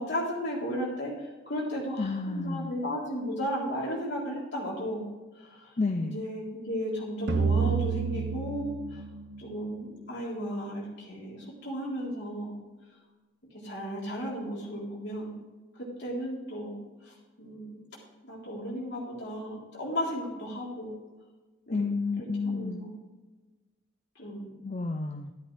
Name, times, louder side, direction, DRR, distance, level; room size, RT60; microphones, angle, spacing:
voice 1, 0.0-5.1 5.4-5.7 6.0-9.0 9.4-12.6 13.5-15.4 15.8-16.8 17.0-17.8 18.2-20.9 21.7-21.8 22.2-22.9 24.2-24.5, equal, 55° left, -4 dB, 3.6 m, -35 dB
voice 2, 2.0-2.7 5.8-6.2 21.7-22.8 24.6-25.3, left 3 dB, 35° left, 6 dB, 0.5 m, -30 dB
sound 1, 7.3-10.5, right 5 dB, 55° right, 1.0 m, -30 dB
12.5 x 10.5 x 3.3 m, 1.2 s
head